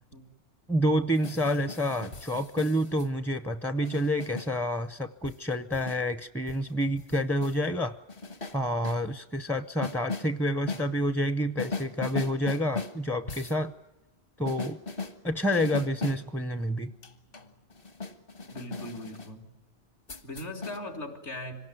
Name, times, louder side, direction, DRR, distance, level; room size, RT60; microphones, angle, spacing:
voice 1, 0.7-8.0 8.5-13.7 14.4-14.8 15.2-16.9, equal, ahead, 12 dB, 0.5 m, -28 dB
sound 1, 1.1-3.1 3.8-4.5 5.2-6.0 6.5-7.6 8.1-9.0 9.8-10.3 10.7-10.9 11.6-13.0 13.3-13.6 14.4-15.2 15.5-16.2 16.7-19.3 20.1-20.8, left 3 dB, 55° left, 1.8 m, -38 dB
voice 2, 18.5-19.5 20.2-21.5, left 1 dB, 80° left, 3 dB, 4.0 m, -39 dB
26.0 x 17.5 x 9.2 m, 0.99 s
omnidirectional pair, 1.2 m